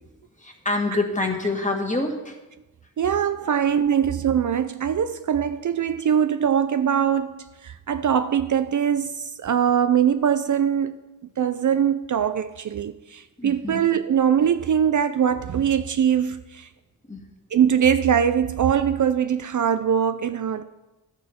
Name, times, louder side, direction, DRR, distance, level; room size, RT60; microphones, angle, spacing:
voice 1, 0.4-2.4 3.4-3.9 13.4-13.8 17.1-17.2, left 2 dB, 20° left, 2.0 m, -27 dB
voice 2, 3.0-11.0 11.4-16.7 17.5-20.6, right 8 dB, 50° right, 0.6 m, -22 dB
11.5 x 9.5 x 4.4 m
cardioid pair, 60°, 38 cm